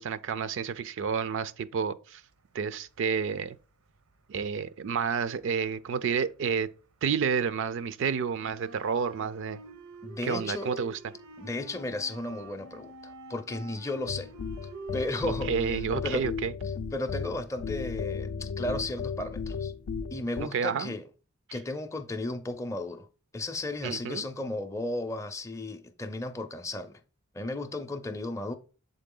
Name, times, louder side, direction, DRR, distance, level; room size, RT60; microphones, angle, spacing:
voice 1, 0.0-2.2 2.5-3.6 4.3-6.7 7.0-9.6 10.2-11.0 15.5-16.5 20.4-20.9 23.8-24.2, right 6 dB, 60° right, 0.4 m, -30 dB
sound 1, 2.6-3.5 3.9-6.8 7.1-15.3, right 3 dB, 85° right, 0.8 m, -46 dB
voice 2, 10.0-10.7 11.4-14.3 14.9-15.7 16.0-16.3 16.9-19.7 20.1-21.0 21.5-23.1 23.3-27.0 27.3-28.5, left 2 dB, 15° left, 0.5 m, -34 dB
sound 2, 14.1-20.4, left 5 dB, 70° left, 0.4 m, -35 dB
7.5 x 3.8 x 3.7 m
head